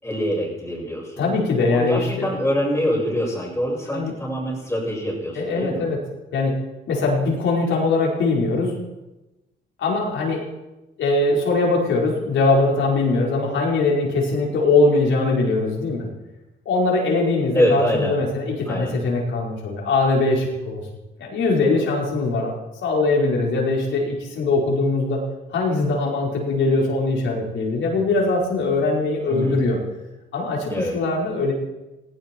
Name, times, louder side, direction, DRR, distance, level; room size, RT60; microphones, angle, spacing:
voice 1, 0.0-1.2 1.7-5.8 17.5-18.2 18.7-19.0 29.3-29.6 30.7-31.0, equal, 10° left, -9 dB, 6.1 m, -24 dB
voice 2, 1.2-2.3 3.9-4.1 5.3-6.0 6.3-6.6 6.9-8.7 9.8-10.4 11.0-16.1 16.6-20.8 21.2-22.5 22.8-25.2 25.5-29.8 30.3-31.5, left 3 dB, 75° left, -2 dB, 4.9 m, -21 dB
19.0 x 16.0 x 4.6 m, 1.0 s
cardioid pair, 90°, 20 cm